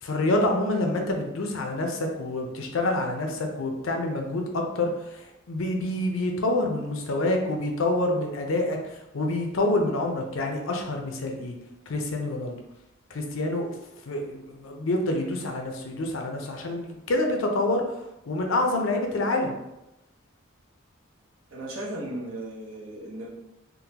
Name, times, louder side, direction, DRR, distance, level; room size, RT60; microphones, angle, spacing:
voice 1, 0.0-11.5 11.9-12.6 13.1-13.8 14.1-17.9 18.3-19.6, left 2 dB, 75° left, 2 dB, 0.5 m, -27 dB
voice 2, 21.5-23.3, right 1 dB, 90° right, -4 dB, 0.9 m, -36 dB
3.7 x 2.1 x 2.8 m, 0.92 s
head